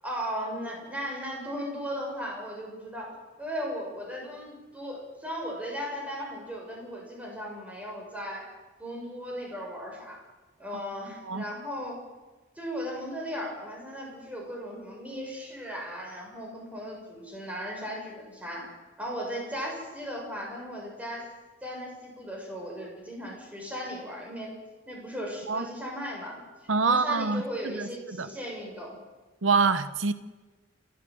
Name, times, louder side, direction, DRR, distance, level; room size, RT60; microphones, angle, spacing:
voice 1, 0.0-8.5 8.8-10.2 10.6-12.0 12.5-18.7 19.0-21.2 21.6-24.5 24.8-26.4 26.8-29.0, equal, 10° right, 6.9 m, -37 dB
voice 2, 26.7-28.3 29.4-30.1, right 4 dB, 85° right, 0.9 m, -26 dB
28.0 x 13.5 x 7.8 m
head